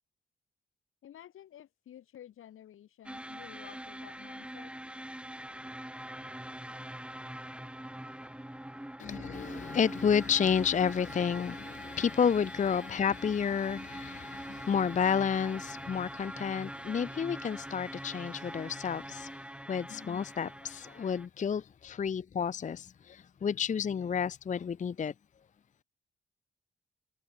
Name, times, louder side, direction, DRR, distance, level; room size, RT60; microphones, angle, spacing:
voice 1, 1.0-4.7, left 11 dB, 85° left, 4.7 m, -52 dB
sound 1, 3.0-21.3, right 1 dB, 5° right, 1.4 m, -43 dB
voice 2, 9.0-19.3 19.7-25.1, left 7 dB, 35° left, 0.5 m, -30 dB
supercardioid pair, 55°, 21 cm